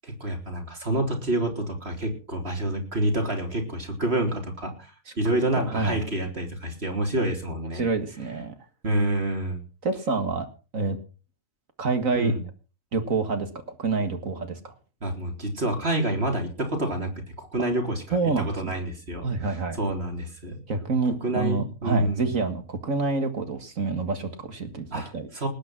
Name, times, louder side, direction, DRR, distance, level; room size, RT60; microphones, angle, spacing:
voice 1, 0.0-7.8 8.8-9.6 12.1-12.4 15.0-17.1 17.4-20.6 21.2-22.4 24.9-25.5, right 1 dB, 45° right, 3 dB, 4.0 m, -28 dB
voice 2, 5.5-6.0 7.7-8.5 9.8-10.5 10.7-11.0 11.8-12.3 12.9-14.7 18.1-18.7 19.2-19.8 20.7-25.3, right 4 dB, 65° right, 8 dB, 2.2 m, -27 dB
19.5 x 8.7 x 5.9 m, 0.36 s
omnidirectional pair, 1.5 m